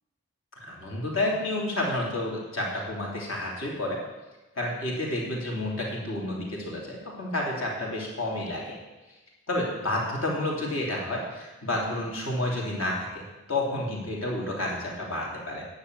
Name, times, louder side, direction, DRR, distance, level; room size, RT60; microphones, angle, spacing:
voice 1, 0.6-4.0 4.5-8.8 9.5-15.7, left 1 dB, 65° left, -2 dB, 3.2 m, -30 dB
10.5 x 6.6 x 8.1 m, 1.1 s
head